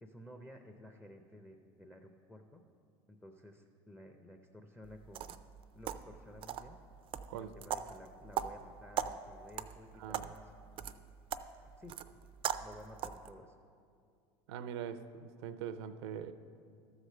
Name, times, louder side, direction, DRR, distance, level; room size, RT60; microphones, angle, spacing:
voice 1, 0.0-2.6 3.1-5.4 5.7-6.8 7.3-10.5 10.8-11.0 11.6-13.5, equal, 5° left, 4 dB, 0.6 m, -54 dB
sound 1, 4.8-13.3, right 9 dB, 40° right, 0.4 m, -41 dB
voice 2, 10.0-10.3 14.5-16.3, right 8 dB, 80° right, 10 dB, 0.6 m, -42 dB
13.0 x 4.9 x 6.6 m, 2.4 s
supercardioid pair, 105°, 14 cm